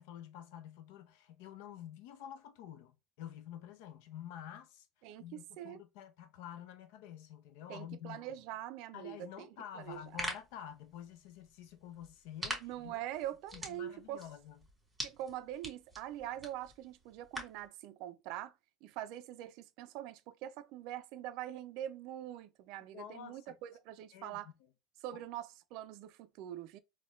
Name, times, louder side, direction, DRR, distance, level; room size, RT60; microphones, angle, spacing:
voice 1, 0.0-4.9 5.2-8.2 8.9-12.9 13.5-14.6 22.9-23.6 24.1-24.5 25.1-25.2, left 10 dB, 80° left, 0.6 m, -49 dB
voice 2, 5.0-5.8 7.7-9.5 9.7-10.0 12.6-14.2 15.0-18.5 18.8-24.5 25.0-26.8, right 12 dB, 70° right, 0.3 m, -44 dB
sound 1, 9.8-17.7, right 1 dB, 10° right, 1.7 m, -46 dB
4.2 x 2.2 x 2.3 m
supercardioid pair, 115°, 0 cm